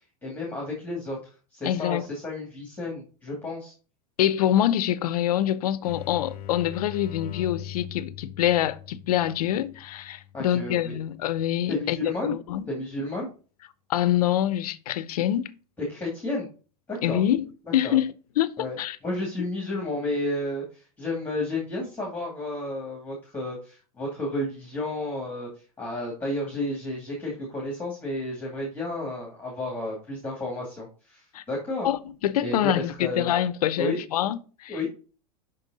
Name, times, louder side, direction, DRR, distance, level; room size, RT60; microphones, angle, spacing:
voice 1, 0.2-1.2 1.5-3.7 10.3-10.9 11.7-12.4 12.7-13.3 15.9-16.5 16.9-17.2 17.7-18.0 18.6-25.5 25.8-31.9 32.4-33.3 33.8-34.0 34.7-34.9, left 1 dB, 10° left, 2.3 m, -32 dB
voice 2, 1.6-2.0 4.2-12.7 13.9-15.5 17.0-17.5 17.7-18.5 18.8-19.0 31.3-31.4 31.8-34.8, left 11 dB, 80° left, 0.7 m, -25 dB
sound 1, 5.8-11.3, left 11 dB, 40° left, 0.9 m, -41 dB
5.7 x 5.3 x 4.0 m
hypercardioid pair, 115°, 19 cm